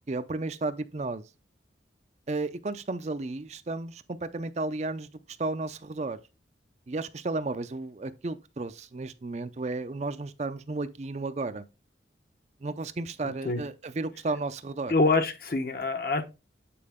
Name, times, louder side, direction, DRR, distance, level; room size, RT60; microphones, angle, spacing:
voice 1, 0.1-1.2 2.3-5.1 5.4-6.2 6.9-11.7 12.6-14.9, right 3 dB, 40° right, 0.5 m, -33 dB
voice 2, 13.2-13.6 14.9-16.2, left 3 dB, 55° left, 1.0 m, -26 dB
8.6 x 4.4 x 3.6 m
head